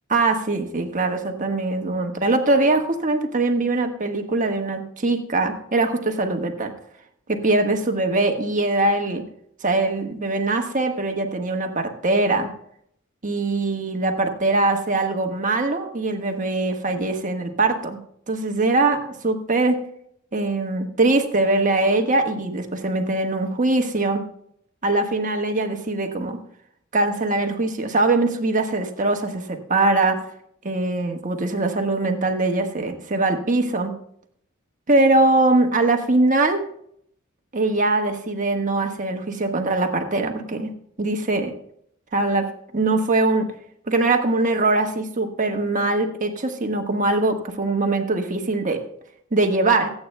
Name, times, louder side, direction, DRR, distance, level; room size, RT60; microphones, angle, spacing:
voice 1, 0.1-6.7 7.3-9.2 9.6-12.5 13.2-18.0 18.3-19.8 20.3-24.2 24.8-26.4 26.9-30.2 30.6-33.9 34.9-36.6 37.5-40.7 41.0-41.5 42.1-43.5 43.9-48.8 49.3-49.9, right 2 dB, 40° right, 4 dB, 1.4 m, -22 dB
23.5 x 8.8 x 2.2 m, 0.68 s
head